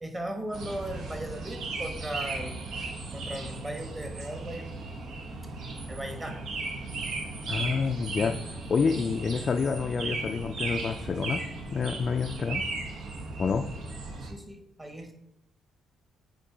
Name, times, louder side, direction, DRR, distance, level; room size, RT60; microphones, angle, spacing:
voice 1, 0.0-2.6 3.1-4.7 5.9-6.4 14.2-15.1, right 1 dB, 15° right, 4 dB, 1.3 m, -37 dB
sound 1, 0.5-14.3, right 3 dB, 75° right, 1.2 m, -36 dB
voice 2, 7.5-8.4 8.7-11.4 11.7-12.7 13.4-13.7, left 5 dB, 45° left, 4 dB, 0.4 m, -28 dB
8.6 x 3.0 x 4.9 m, 0.84 s
cardioid pair, 90°, 0 cm